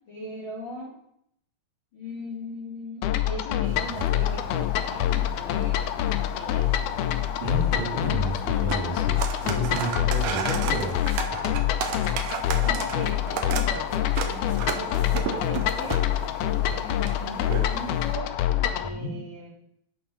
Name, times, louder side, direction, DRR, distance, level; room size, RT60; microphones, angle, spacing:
voice 1, 0.1-0.9 1.9-6.7 10.2-10.6 12.6-16.0 16.4-18.3 18.6-19.5, left 1 dB, 45° left, -5 dB, 1.9 m, -39 dB
sound 1, 3.0-18.9, left 11 dB, 80° left, 1.8 m, -26 dB
sound 2, 3.7-18.1, right 7 dB, 85° right, 2.3 m, -35 dB
voice 2, 7.4-9.2 9.4-11.0 11.5-11.6 18.9-19.2, right 1 dB, 55° right, -3 dB, 2.9 m, -31 dB
10.5 x 3.8 x 5.5 m, 0.76 s
omnidirectional pair, 3.8 m